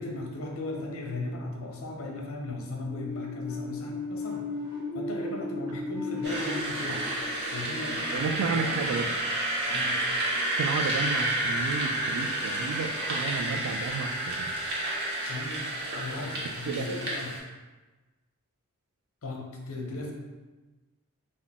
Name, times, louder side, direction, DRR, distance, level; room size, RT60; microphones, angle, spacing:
voice 1, 0.0-4.5 4.9-7.0 7.5-8.9 9.7-10.0 15.3-15.7 15.9-17.3 19.2-20.1, left 2 dB, 65° left, 0 dB, 0.6 m, -37 dB
sound 1, 2.9-8.5, left 3 dB, 10° right, 0.9 m, -36 dB
sound 2, 6.2-17.4, right 1 dB, 50° right, 0.9 m, -30 dB
voice 2, 8.1-9.1 10.6-14.5 16.7-17.0, right 5 dB, 85° right, 8 dB, 0.3 m, -32 dB
3.8 x 2.0 x 3.5 m, 1.2 s
head